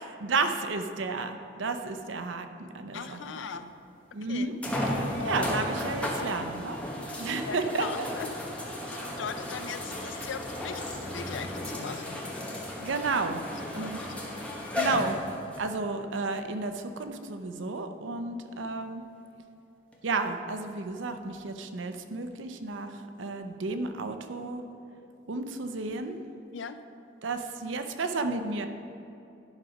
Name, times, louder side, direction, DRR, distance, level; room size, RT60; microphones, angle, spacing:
voice 1, 0.2-3.4 4.1-4.6 5.2-6.8 7.2-8.1 12.8-13.4 13.7-14.0 14.8-15.2 15.6-19.0 20.0-22.9 23.2-24.6 25.3-26.2 27.2-28.7, right 3 dB, 80° right, 7 dB, 0.6 m, -32 dB
voice 2, 2.9-3.7 4.3-4.5 5.2-5.5 7.4-8.3 8.9-12.3 13.4-14.1 26.5-26.8, left 6 dB, 75° left, 10 dB, 0.4 m, -39 dB
sound 1, 3.5-3.6 4.6-15.7 16.4-16.5 19.9-20.0, left 1 dB, 5° left, 1.0 m, -34 dB
10.5 x 5.0 x 5.2 m, 2.8 s
head